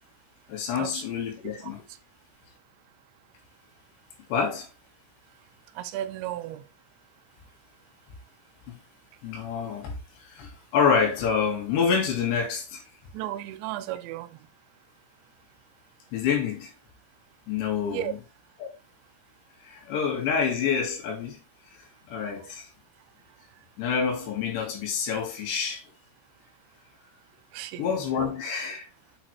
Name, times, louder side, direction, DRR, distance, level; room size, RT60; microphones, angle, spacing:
voice 1, 0.5-1.8 4.3-4.7 8.7-8.8 9.2-12.8 16.1-16.7 17.5-18.2 18.6-18.7 19.6-21.4 21.8-22.7 23.8-25.8 27.8-28.9, left 6 dB, 75° left, 4.2 m, -27 dB
voice 2, 5.8-6.6 13.1-14.4 17.9-18.1 27.5-27.9 28.2-28.3, right 13 dB, 90° right, 3.0 m, -34 dB
8.1 x 6.4 x 3.3 m
omnidirectional pair, 5.1 m